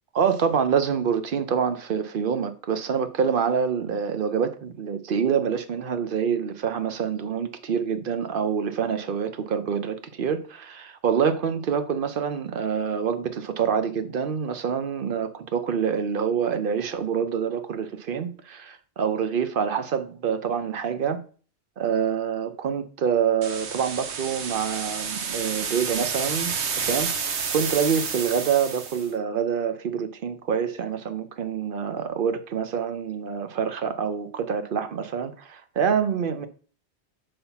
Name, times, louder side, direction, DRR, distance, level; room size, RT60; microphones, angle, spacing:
voice 1, 0.2-21.2 21.8-27.1 27.5-36.5, right 7 dB, 55° right, 0.8 m, -26 dB
sound 1, 23.4-29.1, right 6 dB, 70° right, 1.1 m, -30 dB
5.7 x 3.5 x 5.6 m
omnidirectional pair, 1.2 m